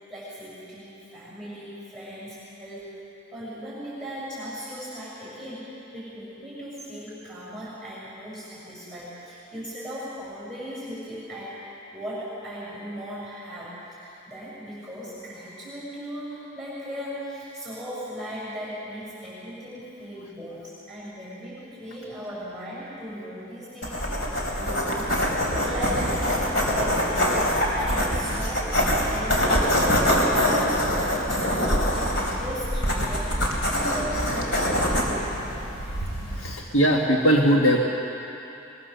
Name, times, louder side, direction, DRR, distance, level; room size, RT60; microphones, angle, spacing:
voice 1, 0.1-2.9 3.3-23.9 24.2-25.2 25.4-30.8 31.1-33.4 33.7-35.6, equal, 5° left, -8 dB, 6.8 m, -38 dB
sound 1, 23.8-36.5, equal, 60° left, 4.1 m, -24 dB
voice 2, 36.3-37.8, equal, 80° left, -1 dB, 1.6 m, -20 dB
23.0 x 22.5 x 6.9 m, 3.0 s
head